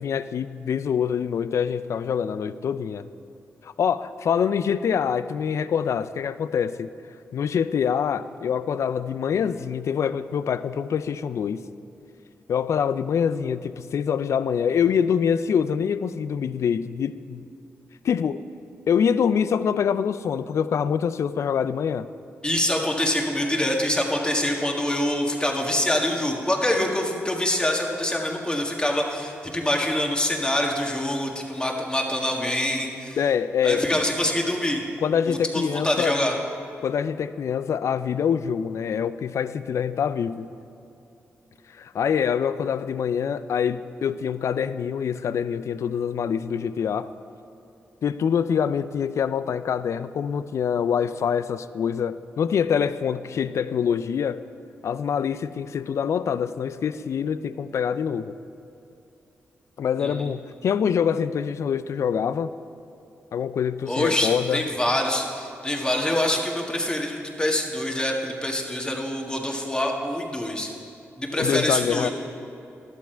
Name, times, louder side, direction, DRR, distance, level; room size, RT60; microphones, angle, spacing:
voice 1, 0.0-3.1 3.6-6.9 7.3-11.6 12.5-17.5 18.0-18.4 18.9-22.1 33.2-33.8 35.0-36.2 36.8-40.5 41.8-47.1 48.0-54.4 54.8-58.4 59.8-62.5 63.3-64.6 71.4-72.1, left 7 dB, 65° left, 14 dB, 0.3 m, -25 dB
voice 2, 22.4-33.2 33.6-34.8 35.3-36.3 60.0-60.1 63.9-70.7 71.2-72.1, left 1 dB, 15° left, 0 dB, 1.6 m, -25 dB
11.5 x 7.4 x 4.5 m, 2.7 s
supercardioid pair, 50°, 5 cm